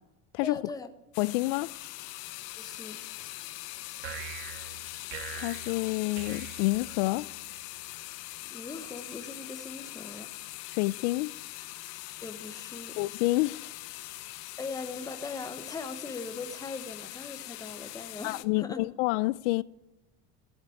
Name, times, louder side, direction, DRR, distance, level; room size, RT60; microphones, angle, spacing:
voice 1, 0.4-0.9 2.6-3.0 8.4-10.3 12.2-13.0 14.6-18.9, left 4 dB, 10° left, 1.0 m, -40 dB
sound 1, 1.1-18.4, left 18 dB, 65° left, 0.9 m, -42 dB
voice 2, 1.2-1.7 5.4-7.3 10.7-11.3 13.0-13.7 18.2-19.6, left 20 dB, 80° left, 0.5 m, -28 dB
sound 2, 4.0-7.4, right 7 dB, 90° right, 2.1 m, -43 dB
14.5 x 7.4 x 9.4 m
cardioid pair, 165°, 34 cm